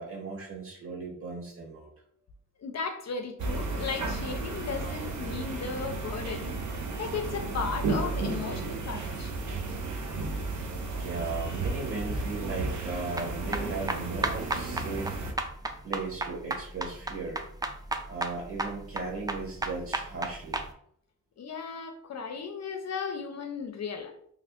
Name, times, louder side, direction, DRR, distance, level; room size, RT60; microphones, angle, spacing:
voice 1, 0.0-1.9 4.8-4.9 8.4-8.7 9.7-10.0 10.9-15.2 15.8-17.4 18.1-20.6, right 3 dB, 45° right, 1.3 m, -37 dB
voice 2, 2.6-9.4 21.4-24.2, left 5 dB, 55° left, 0.5 m, -36 dB
sound 1, 3.4-15.3, right 3 dB, 65° right, 0.6 m, -33 dB
sound 2, 13.2-20.7, right 2 dB, 15° right, 0.3 m, -33 dB
2.7 x 2.4 x 3.5 m
cardioid pair, 65°, 32 cm